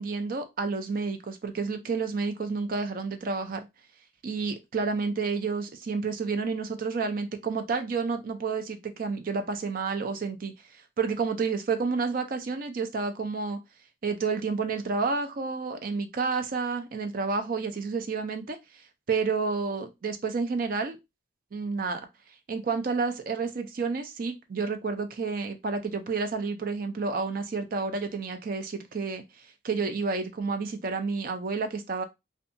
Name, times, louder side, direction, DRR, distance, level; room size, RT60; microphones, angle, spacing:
voice 1, 0.0-3.7 4.2-13.6 14.0-18.6 19.1-21.0 21.5-22.0 22.5-32.0, right 4 dB, 45° right, 0.4 m, -30 dB
2.6 x 2.3 x 2.5 m
head